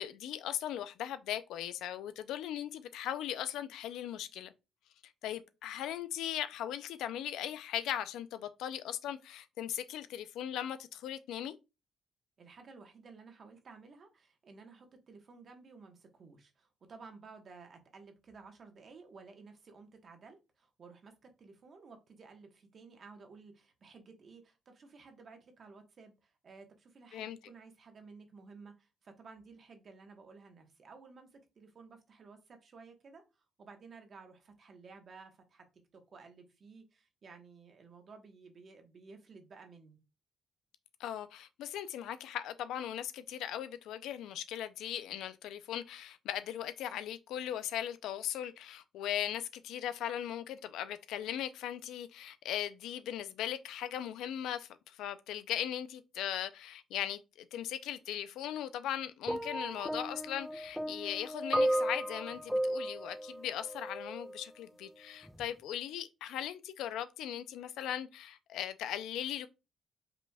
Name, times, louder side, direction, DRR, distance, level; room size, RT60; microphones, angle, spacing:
voice 1, 0.0-4.5 5.2-11.6 27.1-27.4 41.0-69.5, left 11 dB, 85° left, 0.4 m, -38 dB
voice 2, 12.4-35.7 35.9-40.0, right 4 dB, 50° right, 1.1 m, -55 dB
sound 1, 59.3-64.4 65.3-65.5, right 1 dB, ahead, 0.3 m, -34 dB
5.0 x 3.3 x 2.3 m
cardioid pair, 90°, 0 cm